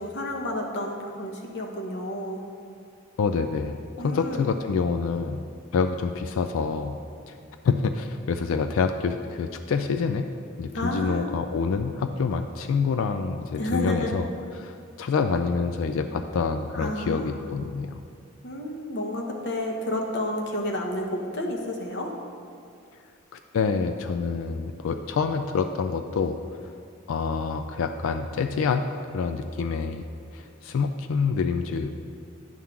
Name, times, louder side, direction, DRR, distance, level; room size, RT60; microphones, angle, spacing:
voice 1, 0.0-2.4 4.0-4.5 10.7-11.3 13.6-14.1 16.7-17.5 18.4-22.1, left 1 dB, 55° left, 1 dB, 0.9 m, -30 dB
voice 2, 3.2-5.4 5.7-7.0 7.3-7.4 7.6-10.3 10.6-14.3 14.5-18.0 23.3-26.4 27.1-28.9 29.1-30.0 30.3-31.9, left 5 dB, 75° left, 7 dB, 0.3 m, -27 dB
9.5 x 3.7 x 5.8 m, 2.3 s
head